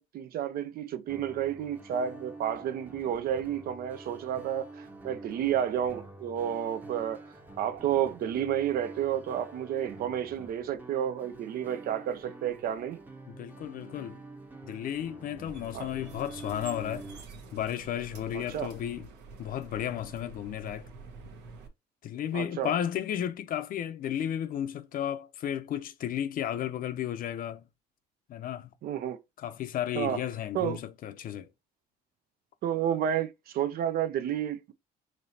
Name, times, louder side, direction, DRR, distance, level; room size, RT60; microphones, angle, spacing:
voice 1, 0.0-7.2 7.6-13.0 15.7-15.9 18.3-18.7 22.3-22.7 28.8-29.2 29.9-30.2 30.5-30.8 32.6-34.7, right 10 dB, 60° right, 0.6 m, -31 dB
sound 1, 1.1-17.2, right 2 dB, 10° right, 0.8 m, -47 dB
voice 2, 13.3-14.2 14.6-17.1 17.5-19.1 19.4-20.9 22.0-27.6 28.3-28.7 29.4-31.5, left 10 dB, 55° left, 0.6 m, -33 dB
sound 2, 15.5-21.7, right 4 dB, 85° right, 1.2 m, -47 dB
5.3 x 3.1 x 2.7 m
cardioid pair, 110°, 17 cm